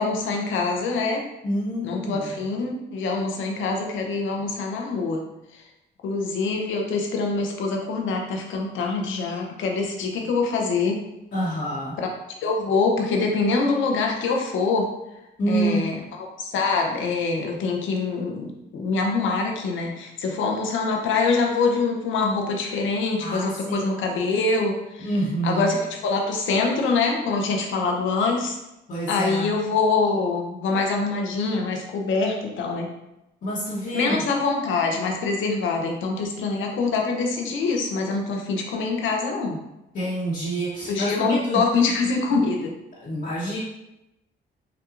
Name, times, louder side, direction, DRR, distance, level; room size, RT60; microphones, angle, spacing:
voice 1, 0.0-1.2 1.8-5.2 6.0-11.0 12.0-12.1 12.4-14.9 15.5-25.1 25.4-28.6 29.1-32.9 33.9-39.6 40.9-42.7, left 4 dB, 80° left, 1 dB, 0.8 m, -24 dB
voice 2, 1.4-2.3 11.3-12.0 15.4-15.9 23.2-23.9 25.0-25.6 28.9-29.5 33.4-34.2 39.9-41.6 43.0-43.6, right 1 dB, 50° left, -8 dB, 1.2 m, -27 dB
5.9 x 2.3 x 2.5 m, 0.91 s
cardioid pair, 90°, 20 cm